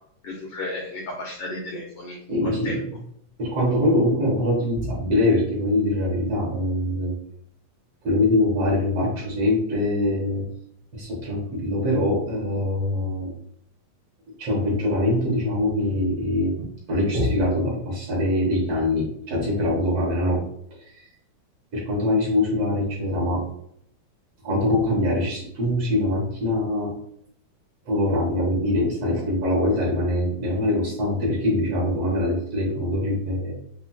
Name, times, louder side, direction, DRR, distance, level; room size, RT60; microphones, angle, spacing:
voice 1, 0.2-2.8, left 2 dB, 90° left, -1 dB, 1.3 m, -34 dB
voice 2, 2.3-2.8 3.4-7.2 8.0-10.5 10.9-13.3 14.4-20.5 21.0-21.1 21.7-23.5 24.4-26.9 27.9-33.5, left 1 dB, 60° right, -3 dB, 1.9 m, -23 dB
7.2 x 2.6 x 2.3 m, 0.70 s
omnidirectional pair, 3.6 m